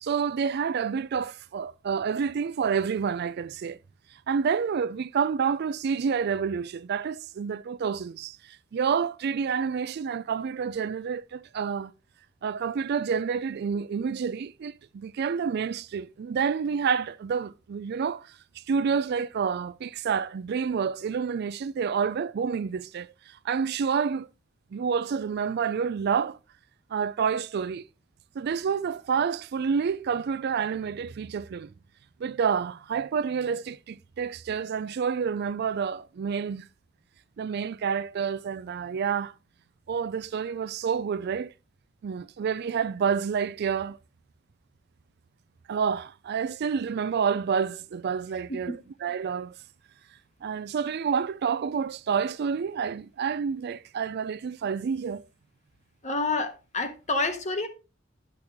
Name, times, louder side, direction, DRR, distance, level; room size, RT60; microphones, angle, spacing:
voice 1, 0.0-3.8 4.3-11.9 12.4-24.3 24.7-26.4 26.9-27.8 28.4-31.7 32.2-36.7 37.4-39.3 39.9-41.5 42.0-44.0 45.7-49.6 50.4-55.2, right 6 dB, 55° right, 0.4 m, -29 dB
voice 2, 56.0-57.7, left 3 dB, 40° left, 1.3 m, -28 dB
10.5 x 6.1 x 3.5 m
head